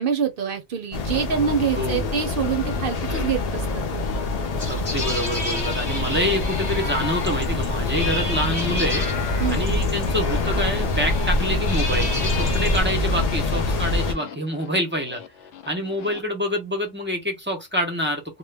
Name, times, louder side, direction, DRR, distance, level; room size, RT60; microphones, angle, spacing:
voice 1, 0.0-3.8 9.4-9.8, right 7 dB, 60° right, 0.7 m, -25 dB
sound 1, 0.9-14.1, left 3 dB, 50° left, 0.5 m, -26 dB
sound 2, 1.5-16.2, left 8 dB, 90° left, 0.9 m, -43 dB
voice 2, 1.7-2.1 4.7-9.0 9.5-15.2 15.7-18.2, equal, 15° right, 0.5 m, -26 dB
sound 3, 4.6-12.8, left 1 dB, 30° left, 0.9 m, -29 dB
2.1 x 2.1 x 3.3 m
omnidirectional pair, 1.1 m